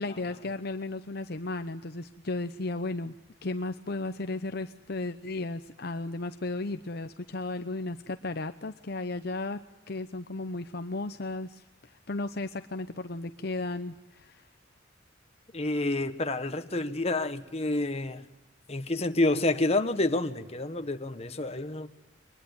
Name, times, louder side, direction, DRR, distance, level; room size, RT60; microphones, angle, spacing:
voice 1, 0.0-3.1 3.4-9.6 9.9-11.6 12.1-14.4, left 2 dB, 55° left, 9 dB, 0.9 m, -34 dB
voice 2, 15.5-18.2 18.7-21.9, left 2 dB, 35° left, 8 dB, 1.4 m, -28 dB
24.0 x 20.0 x 8.9 m, 0.99 s
head